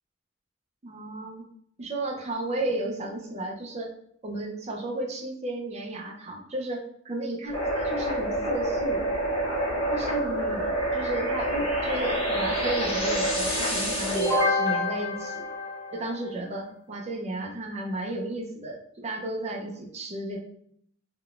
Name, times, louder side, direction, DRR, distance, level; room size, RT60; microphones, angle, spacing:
voice 1, 0.8-1.5 1.8-3.9 4.2-9.1 9.9-15.4 15.9-20.4, right 2 dB, 35° right, 1 dB, 0.5 m, -33 dB
sound 1, 7.5-16.2, equal, 30° left, 1.0 m, -27 dB
3.6 x 2.2 x 2.3 m, 0.68 s
head